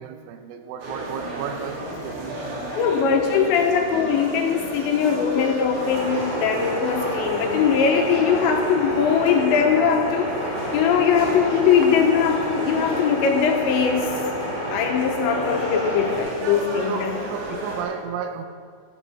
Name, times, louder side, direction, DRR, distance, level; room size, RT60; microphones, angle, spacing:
voice 1, 0.0-3.1 3.7-3.9 16.9-18.4, right 8 dB, 80° right, 3.1 m, -34 dB
sound 1, 0.8-17.8, right 1 dB, 60° right, 4.6 m, -33 dB
voice 2, 2.8-14.2 14.7-17.2, left 6 dB, 80° left, 3.0 m, -21 dB
sound 2, 5.8-16.2, equal, 10° right, 2.8 m, -31 dB
14.5 x 14.0 x 3.5 m
omnidirectional pair, 5.7 m